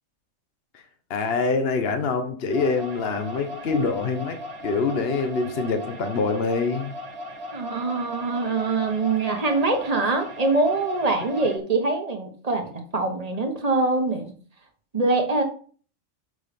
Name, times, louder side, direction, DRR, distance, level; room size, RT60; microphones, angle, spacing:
voice 1, 1.1-6.9, left 4 dB, 50° left, 7 dB, 1.2 m, -25 dB
sound 1, 2.5-11.6, left 1 dB, 55° right, 1.6 m, -37 dB
voice 2, 7.5-14.3 14.9-15.4, right 3 dB, 30° right, 4 dB, 1.4 m, -24 dB
6.6 x 5.6 x 5.2 m, 0.43 s
omnidirectional pair, 1.3 m